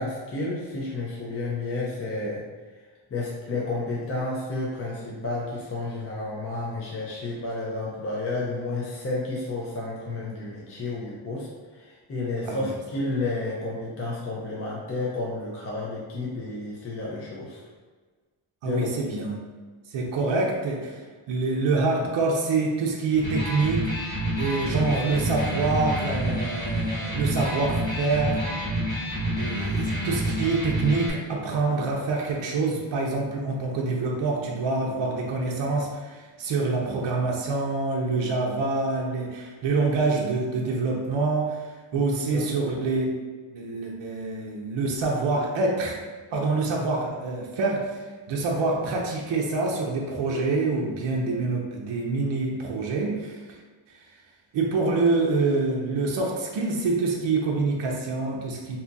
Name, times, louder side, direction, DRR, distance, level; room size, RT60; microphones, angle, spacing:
voice 1, 0.0-2.4 3.1-17.6 18.6-19.0 41.9-42.0 42.3-42.5, left 2 dB, 30° left, -5 dB, 0.4 m, -31 dB
voice 2, 18.6-19.4 19.9-21.0 21.3-23.9 24.4-28.4 29.4-43.2 43.5-46.0 46.3-53.6 53.9-54.0 54.5-58.8, right 3 dB, 65° right, -2 dB, 0.6 m, -26 dB
Electric guitar, 23.1-31.1, equal, 5° right, 1.0 m, -28 dB
2.7 x 2.3 x 3.8 m, 1.4 s
wide cardioid pair, 180°, 48 cm